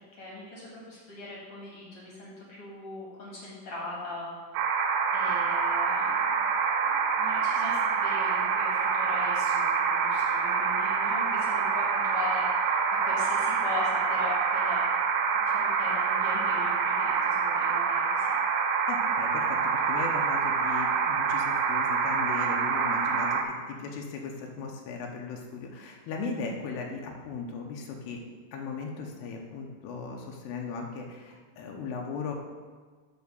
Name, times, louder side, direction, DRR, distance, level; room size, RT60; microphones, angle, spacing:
voice 1, 0.1-4.3 5.1-6.4 6.8-14.8 15.4-18.3, left 2 dB, 45° left, -5 dB, 2.0 m, -40 dB
sound 1, 4.5-23.4, right 5 dB, 85° right, 2.8 m, -26 dB
voice 2, 18.9-28.2 28.5-32.4, left 4 dB, 90° left, 1 dB, 2.9 m, -37 dB
7.2 x 4.5 x 6.8 m, 1.5 s
omnidirectional pair, 4.7 m